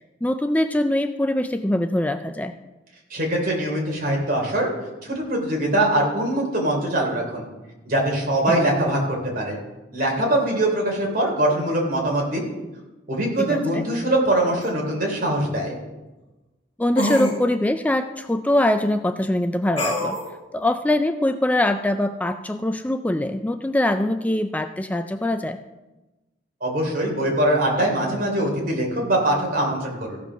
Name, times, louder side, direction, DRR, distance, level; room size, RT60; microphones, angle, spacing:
voice 1, 0.2-2.5 8.5-8.6 13.4-13.9 16.8-20.2 20.5-25.6, left 1 dB, 10° left, 8 dB, 0.4 m, -23 dB
voice 2, 3.1-4.7 5.0-7.5 7.8-9.6 9.9-12.4 13.1-15.7 26.6-30.2, right 1 dB, 50° right, 0 dB, 3.2 m, -22 dB
sound 1, 14.6-14.7 17.0-17.4 19.8-20.3, left 1 dB, 30° left, 2.8 m, -24 dB
15.5 x 5.9 x 6.1 m, 1.1 s
head